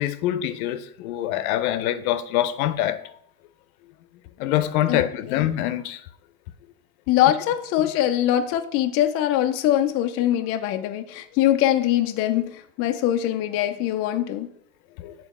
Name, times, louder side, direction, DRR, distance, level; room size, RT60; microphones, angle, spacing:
voice 1, 0.0-3.0 4.4-6.0 15.0-15.1, left 12 dB, 65° left, 0.7 m, -25 dB
voice 2, 4.9-5.5 7.1-14.5, left 12 dB, 30° left, 0.5 m, -23 dB
7.3 x 3.9 x 5.3 m
supercardioid pair, 115°, 47 cm